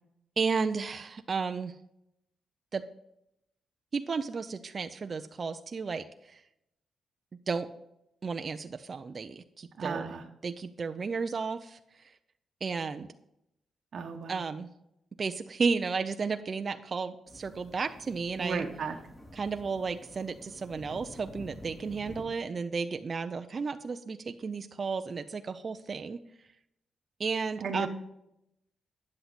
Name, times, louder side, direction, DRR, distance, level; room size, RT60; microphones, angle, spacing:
voice 1, 0.4-1.7 2.7-2.8 3.9-6.4 7.5-7.7 8.2-10.1 10.4-12.1 12.6-13.1 14.3-14.7 15.2-18.6 19.3-26.2 27.2-27.9, right 5 dB, 45° right, 8 dB, 0.5 m, -33 dB
voice 2, 9.8-10.2 13.9-14.4 18.4-19.0 27.6-28.0, right 4 dB, 60° right, 4 dB, 1.0 m, -35 dB
sound 1, 17.3-22.2, left 1 dB, 20° left, 2.7 m, -49 dB
9.7 x 7.8 x 4.1 m, 0.81 s
cardioid pair, 75°, 0 cm